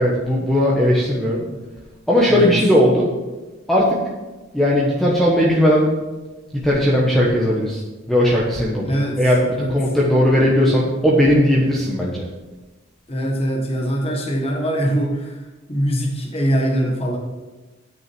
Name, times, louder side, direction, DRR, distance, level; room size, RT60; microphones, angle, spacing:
voice 1, 0.0-1.5 2.1-3.1 3.7-4.0 4.5-5.9 6.6-7.8 8.1-8.9 9.2-12.2, equal, ahead, -5 dB, 1.1 m, -17 dB
voice 2, 2.3-2.6 8.8-9.8 13.1-15.4 15.7-17.2, equal, 30° left, 0 dB, 1.3 m, -22 dB
9.1 x 6.3 x 6.1 m, 1.2 s
head